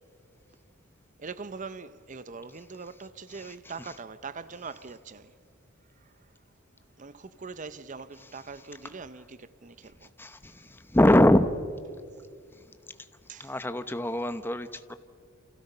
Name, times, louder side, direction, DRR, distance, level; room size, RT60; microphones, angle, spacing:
voice 1, 1.2-5.3 7.0-10.1 13.3-13.5, right 4 dB, 40° right, 0.7 m, -42 dB
voice 2, 10.2-11.5 13.4-14.9, left 1 dB, 10° left, 0.8 m, -23 dB
29.0 x 28.5 x 5.5 m
head